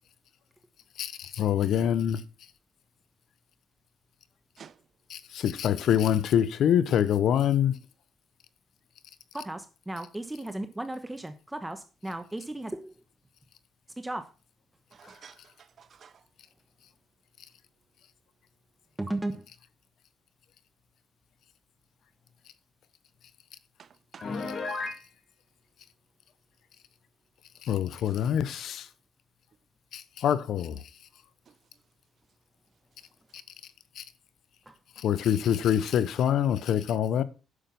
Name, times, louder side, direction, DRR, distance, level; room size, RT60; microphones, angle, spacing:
voice 1, 1.0-2.2 5.1-7.8 27.6-28.9 29.9-30.8 34.0-34.1 35.0-37.2, left 9 dB, 75° left, 0.9 m, -25 dB
voice 2, 9.3-12.9 14.0-14.2 15.1-15.2 19.0-19.5 24.2-24.3 34.7-34.8, right 1 dB, 10° right, 1.1 m, -35 dB
voice 3, 14.9-16.2 23.8-24.3 28.1-28.3 31.5-31.6, right 7 dB, 55° right, 0.7 m, -52 dB
Piano, 24.2-25.0, left 3 dB, 55° left, 2.1 m, -33 dB
9.9 x 6.8 x 5.9 m
cardioid pair, 90°, 0 cm